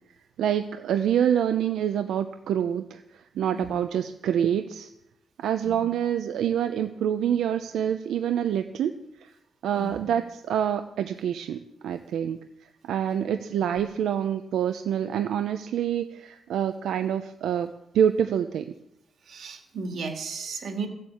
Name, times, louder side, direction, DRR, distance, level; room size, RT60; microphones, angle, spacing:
voice 1, 0.4-4.9 5.4-8.9 9.2-9.3 9.6-12.4 12.8-18.7, right 9 dB, 80° right, 8 dB, 0.7 m, -26 dB
voice 2, 19.3-20.9, right 4 dB, 50° right, 5 dB, 2.1 m, -35 dB
15.5 x 7.7 x 8.6 m, 0.83 s
wide cardioid pair, 180°, 0 cm